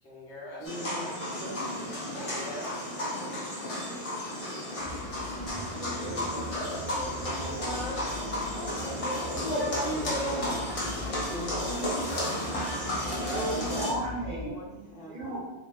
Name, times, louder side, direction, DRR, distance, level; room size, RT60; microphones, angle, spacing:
voice 1, 0.0-0.8 2.1-3.6, left 1 dB, 75° left, -4 dB, 1.1 m, -43 dB
sound 1, 0.6-13.9, left 1 dB, 40° left, 0.6 m, -32 dB
voice 2, 0.6-1.8 7.2-10.7 11.3-12.6 14.3-15.4, right 1 dB, 5° right, -11 dB, 0.9 m, -41 dB
sound 2, 4.8-14.5, equal, 25° right, 1.2 m, -42 dB
sound 3, 8.7-14.1, right 1 dB, 85° right, 1.1 m, -49 dB
voice 3, 13.1-14.5 15.1-15.4, right 1 dB, 45° right, -8 dB, 0.9 m, -34 dB
3.0 x 2.5 x 2.3 m, 1.1 s
omnidirectional pair, 1.1 m